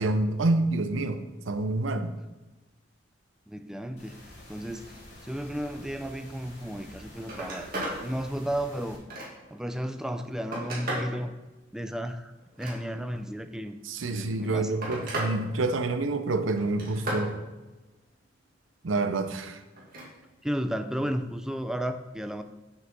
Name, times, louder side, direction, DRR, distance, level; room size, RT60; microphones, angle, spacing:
voice 1, 0.0-2.1 13.8-17.4 18.8-19.6, right 2 dB, 90° right, 9 dB, 0.7 m, -27 dB
voice 2, 3.5-4.2 4.5-7.7 8.0-9.0 9.5-11.3 11.7-12.3 12.6-13.8 14.1-14.7 20.4-22.4, equal, 5° right, 8 dB, 0.4 m, -33 dB
sound 1, 4.0-9.0, left 1 dB, 60° left, 2.3 m, -49 dB
Telephone, 6.8-6.9 7.2-8.0 8.5-9.6 10.1-11.1 12.4-13.2 14.2-15.3 15.7-16.1 16.6-17.3 19.7-20.1 21.5-21.6, right 1 dB, 50° right, 2.2 m, -35 dB
7.4 x 6.5 x 3.6 m, 1.1 s
head